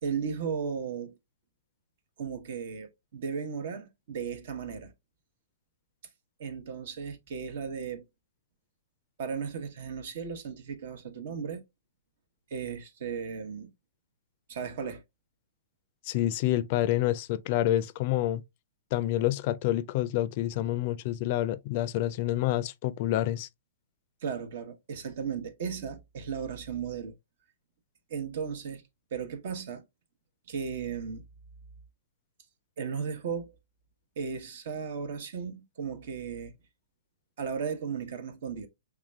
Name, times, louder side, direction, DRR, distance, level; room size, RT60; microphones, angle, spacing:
voice 1, 0.0-1.2 2.2-4.9 6.4-8.0 9.2-11.6 12.5-13.7 14.5-15.0 24.2-27.1 28.1-28.8 29.1-29.8 30.5-31.2 32.8-33.6 34.2-36.5 37.4-38.7, right 6 dB, 60° right, 1.0 m, -35 dB
voice 2, 16.0-18.4 18.9-23.5, left 13 dB, 45° left, 0.4 m, -28 dB
4.9 x 3.4 x 2.3 m
hypercardioid pair, 125°, 0 cm